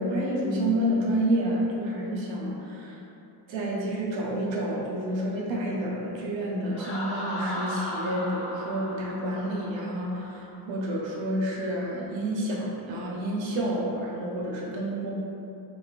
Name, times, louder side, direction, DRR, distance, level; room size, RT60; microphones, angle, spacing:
voice 1, 0.0-2.9 3.5-15.1, right 1 dB, 85° right, -3 dB, 0.9 m, -29 dB
Laughter, 6.7-10.4, left 1 dB, 30° left, 1.2 m, -36 dB
4.5 x 2.6 x 3.1 m, 2.8 s
cardioid pair, 170°, 44 cm